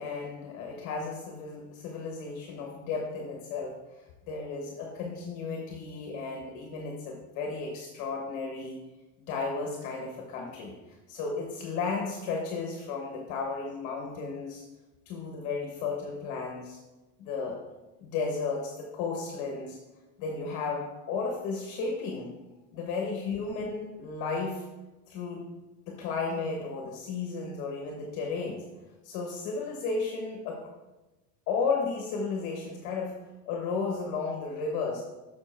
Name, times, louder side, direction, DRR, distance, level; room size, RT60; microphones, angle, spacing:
voice 1, 0.0-3.7 4.3-8.8 9.2-14.6 15.1-16.8 17.2-17.6 18.0-19.8 20.2-22.3 22.7-24.6 25.1-25.5 25.9-28.6 29.0-30.6 31.5-33.1 33.5-35.0, left 4 dB, 40° left, 1 dB, 1.2 m, -34 dB
7.1 x 6.2 x 4.4 m, 1.1 s
supercardioid pair, 160°, 46 cm